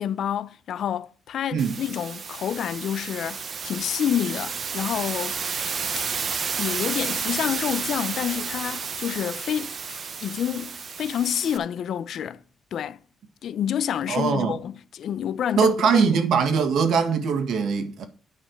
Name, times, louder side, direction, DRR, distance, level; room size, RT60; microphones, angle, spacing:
voice 1, 0.0-5.7 6.0-6.1 6.6-12.4 12.7-13.0 13.4-16.2, left 9 dB, 65° left, 0.6 m, -28 dB
sound 1, 1.6-11.6, right 5 dB, 45° right, 0.9 m, -31 dB
voice 2, 14.1-14.6 15.6-18.0, right 6 dB, 75° right, 1.8 m, -22 dB
10.0 x 5.6 x 5.9 m
cardioid pair, 115°, 0 cm